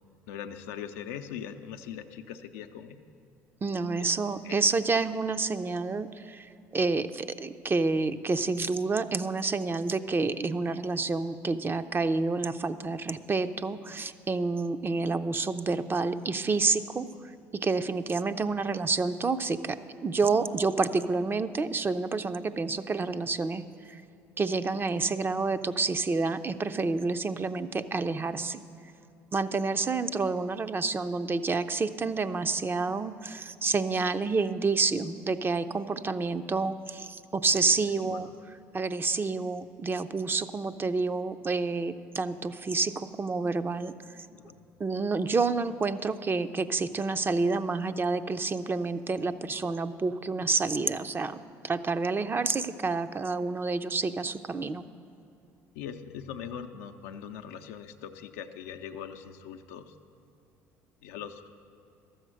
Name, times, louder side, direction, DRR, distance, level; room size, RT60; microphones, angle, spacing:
voice 1, 0.3-3.0 4.0-4.6 37.7-38.3 44.3-44.6 55.7-59.9 61.0-61.5, left 8 dB, 80° left, 7 dB, 0.5 m, -41 dB
voice 2, 3.6-6.5 6.7-17.1 17.6-23.6 23.9-24.0 24.4-28.6 29.3-38.3 38.7-43.9 44.8-54.8, right 4 dB, 25° right, 10 dB, 0.5 m, -29 dB
12.5 x 7.8 x 6.3 m, 2.6 s
hypercardioid pair, 65°, 8 cm